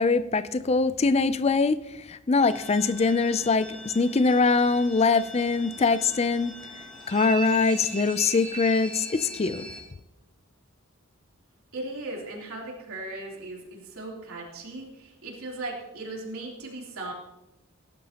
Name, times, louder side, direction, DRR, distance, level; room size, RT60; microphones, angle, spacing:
voice 1, 0.0-6.6 7.1-9.7, left 4 dB, 30° left, 14 dB, 0.4 m, -23 dB
sound 1, 2.4-9.8, right 2 dB, 5° left, 3.6 m, -40 dB
voice 2, 11.7-17.1, right 2 dB, 75° right, -3 dB, 3.4 m, -37 dB
19.0 x 11.5 x 2.9 m, 0.93 s
head